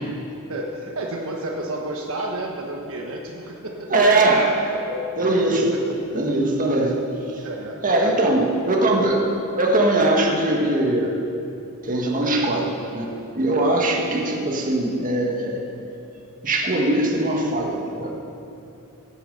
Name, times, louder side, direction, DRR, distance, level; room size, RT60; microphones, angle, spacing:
voice 1, 0.5-4.4 4.8-5.0 5.7-6.0 7.4-8.9, right 1 dB, 65° right, 0 dB, 1.3 m, -31 dB
voice 2, 3.9-4.5 5.2-5.7 6.1-7.0 7.3-7.4 7.8-9.3 9.5-11.2 11.8-13.0 13.3-15.6 16.4-18.1, right 2 dB, 40° right, 0 dB, 1.7 m, -21 dB
16.0 x 8.7 x 6.8 m, 2.8 s
head